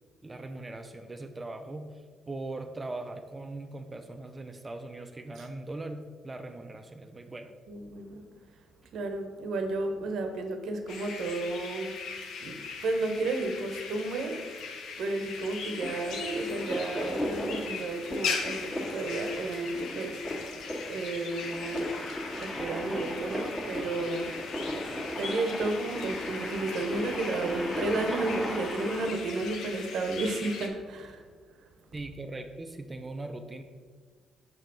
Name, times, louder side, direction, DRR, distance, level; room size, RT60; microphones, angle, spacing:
voice 1, 0.2-7.5 31.9-33.6, right 2 dB, 25° right, 6 dB, 0.5 m, -40 dB
voice 2, 7.7-8.2 8.9-12.0 12.4-14.7 15.0-20.5 20.9-21.9 22.4-24.4 25.1-31.2 31.6-31.7, right 2 dB, 70° right, 5 dB, 0.7 m, -32 dB
sound 1, 10.9-30.7, left 5 dB, 80° left, 0.7 m, -39 dB
sound 2, 15.8-29.1, equal, 25° left, 1.6 m, -37 dB
5.9 x 4.5 x 3.8 m, 1.5 s
cardioid pair, 90°, 0 cm